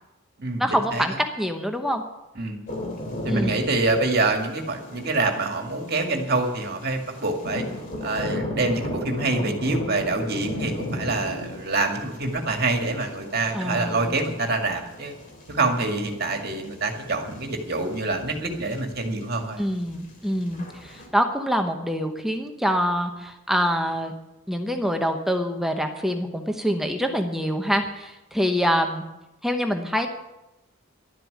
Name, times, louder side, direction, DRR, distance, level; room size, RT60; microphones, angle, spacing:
voice 1, 0.6-2.0 3.3-3.6 10.5-10.6 13.5-14.1 19.6-24.1 24.5-29.0 29.4-30.1, equal, ahead, 5 dB, 0.9 m, -25 dB
sound 1, 2.7-21.1, left 1 dB, 40° left, 2.8 m, -36 dB
voice 2, 3.2-7.6 8.0-15.1 15.5-19.6, right 3 dB, 50° right, 4 dB, 2.1 m, -26 dB
12.0 x 7.6 x 9.6 m, 0.97 s
head